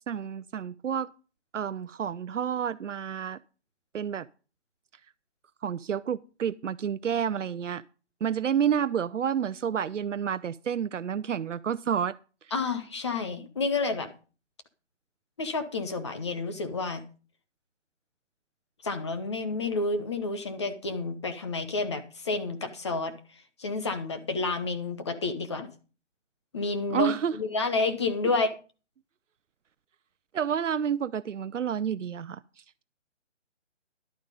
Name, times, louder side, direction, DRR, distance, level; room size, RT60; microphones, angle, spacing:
voice 1, 0.1-1.1 1.5-3.4 3.9-4.3 5.6-7.8 8.2-12.1 26.9-27.3 30.3-32.4, right 8 dB, 80° right, 0.7 m, -29 dB
voice 2, 12.5-14.1 15.4-17.0 18.8-23.1 23.6-25.7 26.5-28.5, left 3 dB, 25° left, 0.9 m, -30 dB
11.5 x 8.8 x 5.3 m
hypercardioid pair, 165°, 36 cm